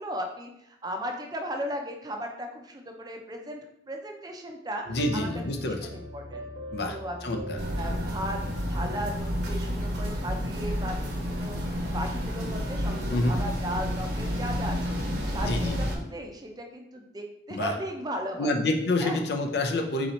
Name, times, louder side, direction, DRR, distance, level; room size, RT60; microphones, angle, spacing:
voice 1, 0.0-4.8 5.1-6.4 6.8-7.4 7.8-8.4 8.7-15.0 15.3-18.6 19.0-19.2, equal, 20° right, 2 dB, 0.5 m, -36 dB
voice 2, 4.9-5.8 6.7-7.0 7.2-7.6 13.1-13.4 15.4-15.8 17.5-17.7 18.4-20.1, left 2 dB, 65° left, 4 dB, 0.5 m, -27 dB
sound 1, 4.9-10.0, right 1 dB, 80° right, 0.6 m, -40 dB
sound 2, 7.6-16.0, equal, 65° right, 1.0 m, -30 dB
3.9 x 2.9 x 4.2 m, 0.76 s
head